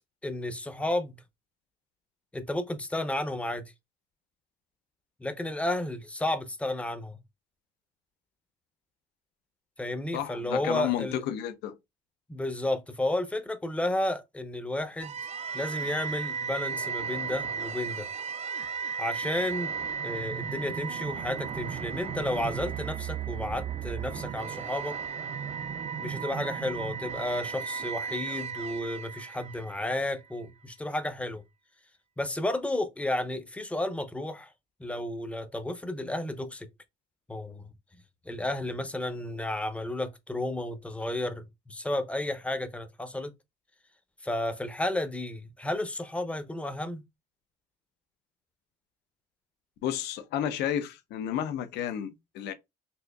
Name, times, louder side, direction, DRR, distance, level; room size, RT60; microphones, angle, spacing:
voice 1, 0.2-1.1 2.3-3.7 5.2-7.1 9.8-11.2 12.3-15.2 15.5-18.1 19.0-19.7 20.0-25.0 26.0-31.4 32.2-34.5 34.8-36.7 37.3-37.7 38.3-43.3 44.2-47.0, left 1 dB, 5° left, 0.5 m, -32 dB
voice 2, 10.1-11.8 49.8-52.5, left 10 dB, 85° left, 0.6 m, -31 dB
sound 1, 15.0-30.1, right 7 dB, 40° right, 0.4 m, -35 dB
4.2 x 2.6 x 2.3 m
cardioid pair, 110°, 17 cm